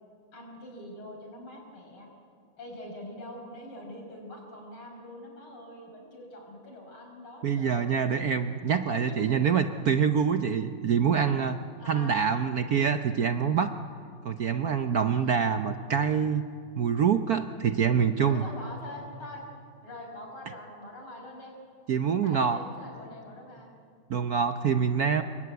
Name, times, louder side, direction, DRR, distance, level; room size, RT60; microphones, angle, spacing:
voice 1, 0.3-2.1 2.6-8.0 8.9-9.1 11.8-12.2 15.1-15.4 18.2-19.4 19.8-21.5 22.2-23.7, left 1 dB, 75° left, 1 dB, 6.4 m, -44 dB
voice 2, 7.4-11.6 11.8-13.7 14.2-16.4 16.8-18.4 21.9-22.6 24.1-25.2, right 7 dB, 60° right, 8 dB, 1.0 m, -25 dB
26.5 x 22.5 x 9.4 m, 2.3 s
omnidirectional pair, 2.4 m